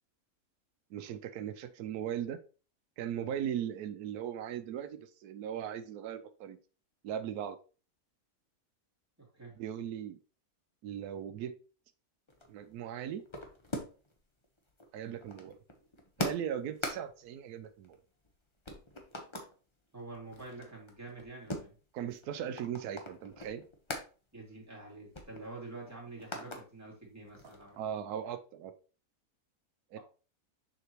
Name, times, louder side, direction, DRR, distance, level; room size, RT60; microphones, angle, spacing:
voice 1, 0.9-2.4 3.0-6.6 7.0-7.6 9.6-10.2 10.8-11.6 12.5-13.2 14.9-15.5 16.2-18.0 21.9-23.6 27.8-28.7 29.9-30.0, right 9 dB, 90° right, 10 dB, 1.2 m, -38 dB
voice 2, 9.2-9.6 19.9-21.7 24.3-27.8, right 3 dB, 10° right, -3 dB, 2.5 m, -47 dB
sound 1, 12.3-14.2 14.4-18.3 18.6-19.5 20.0-24.1 24.5-24.6 24.9-26.6 27.0-27.9, left 1 dB, 20° left, 1.0 m, -42 dB
6.6 x 5.8 x 3.0 m, 0.36 s
omnidirectional pair, 1.6 m